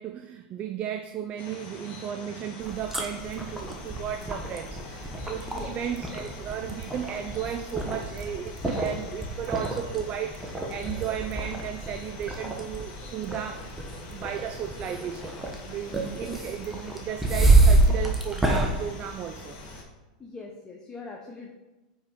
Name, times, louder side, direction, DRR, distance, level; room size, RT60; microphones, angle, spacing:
voice 1, 0.0-13.7 14.0-19.6, right 9 dB, 35° right, 8 dB, 0.4 m, -35 dB
sound 1, 1.4-19.8, left 3 dB, 45° left, 1.5 m, -45 dB
sound 2, 2.6-19.8, right 2 dB, 5° right, 1.0 m, -28 dB
voice 2, 16.0-16.4 20.2-21.5, left 3 dB, 15° left, 0 dB, 0.8 m, -42 dB
5.4 x 4.9 x 4.5 m, 1.1 s
hypercardioid pair, 115°, 4 cm